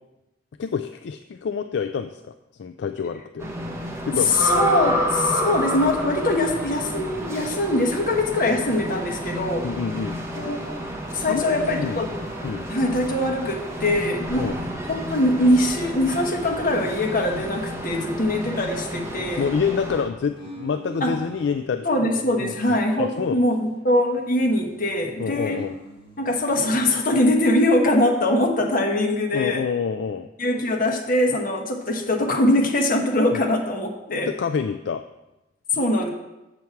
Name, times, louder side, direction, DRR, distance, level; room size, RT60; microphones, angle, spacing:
voice 1, 0.6-3.5 4.0-4.3 9.6-10.2 11.3-11.4 11.8-12.0 12.4-12.7 14.4-14.6 19.4-21.9 22.4-23.4 25.2-25.8 29.3-30.3 33.3-33.4 34.1-35.0, left 6 dB, 70° left, 9 dB, 0.4 m, -27 dB
sound 1, 3.4-20.1, equal, 15° right, 1.1 m, -30 dB
voice 2, 4.3-9.7 10.3-10.6 11.1-12.1 12.7-14.5 14.9-19.5 21.0-21.1 21.8-25.6 26.2-29.7 30.4-34.3 35.7-36.1, left 1 dB, 50° left, 2 dB, 1.3 m, -22 dB
sound 2, 20.3-21.6 22.1-23.8 24.1-26.8, left 1 dB, 30° left, 3.3 m, -44 dB
7.6 x 7.1 x 4.6 m, 0.98 s
head